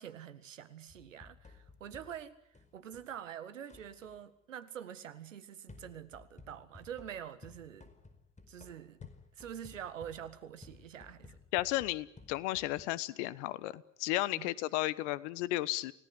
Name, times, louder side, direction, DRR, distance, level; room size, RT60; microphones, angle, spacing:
voice 1, 0.0-2.4 2.7-7.9 8.5-9.0 9.4-11.4 14.3-14.5, right 9 dB, 85° right, 1.7 m, -46 dB
sound 1, 0.9-3.2 3.7-4.3 5.7-12.8, left 3 dB, 20° left, 5.1 m, -56 dB
voice 2, 11.5-15.9, left 17 dB, 70° left, 1.3 m, -34 dB
29.5 x 18.0 x 9.7 m
hypercardioid pair, 65°, 37 cm